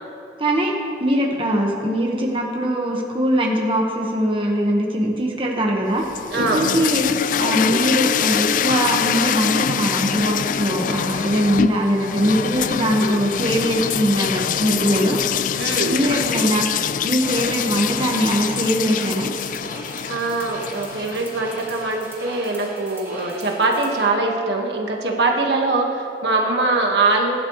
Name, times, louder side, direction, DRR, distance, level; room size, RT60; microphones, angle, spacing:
voice 1, 0.4-0.7 1.0-6.0 6.3-7.0 7.4-15.2 15.8-16.7 17.0-19.3, equal, 30° right, -1 dB, 1.4 m, -21 dB
sound 1, 6.0-22.0, left 8 dB, 45° left, 0.3 m, -24 dB
voice 2, 6.3-6.7 15.6-16.0 20.1-27.3, right 3 dB, 75° right, 0 dB, 1.6 m, -22 dB
sound 2, 17.2-24.0, right 1 dB, 15° right, 2.6 m, -39 dB
21.0 x 11.5 x 3.2 m, 2.7 s
head